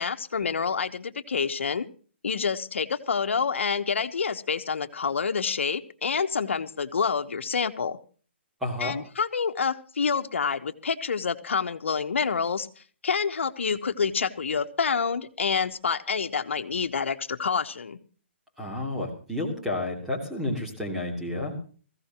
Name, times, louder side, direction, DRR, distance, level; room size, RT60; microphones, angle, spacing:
voice 1, 0.0-1.9 2.2-8.0 8.8-18.0, left 5 dB, 80° left, 7 dB, 1.2 m, -28 dB
voice 2, 8.6-9.0 18.6-21.6, left 1 dB, 5° right, -2 dB, 2.9 m, -31 dB
20.5 x 15.5 x 3.0 m, 0.40 s
hypercardioid pair, 155°, 7 cm